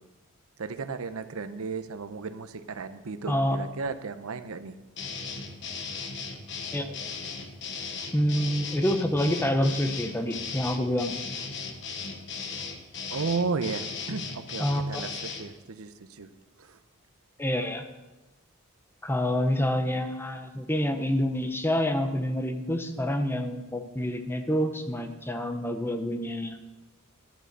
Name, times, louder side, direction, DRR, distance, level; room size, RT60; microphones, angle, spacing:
voice 1, 0.6-4.7 13.1-16.3 16.7-16.8, right 4 dB, 85° right, 11 dB, 0.7 m, -34 dB
voice 2, 3.3-3.7 6.7-7.1 8.1-11.2 14.6-15.1 17.4-17.8 19.0-26.6, equal, 10° left, 6 dB, 0.8 m, -27 dB
sound 1, 5.0-15.5, left 5 dB, 55° left, 1.2 m, -37 dB
12.0 x 7.6 x 6.7 m, 1.1 s
head